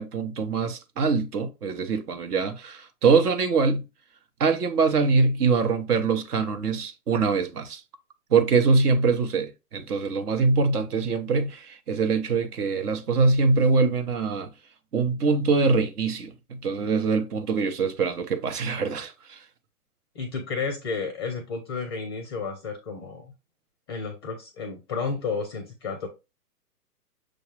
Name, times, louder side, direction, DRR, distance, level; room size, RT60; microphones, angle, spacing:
voice 1, 0.0-3.9 4.4-7.8 8.3-14.5 14.9-19.4, right 4 dB, 70° right, 1.0 m, -23 dB
voice 2, 20.1-23.3 23.9-26.1, left 4 dB, 20° left, 0.4 m, -32 dB
6.3 x 2.3 x 3.1 m
hypercardioid pair, 135°, 47 cm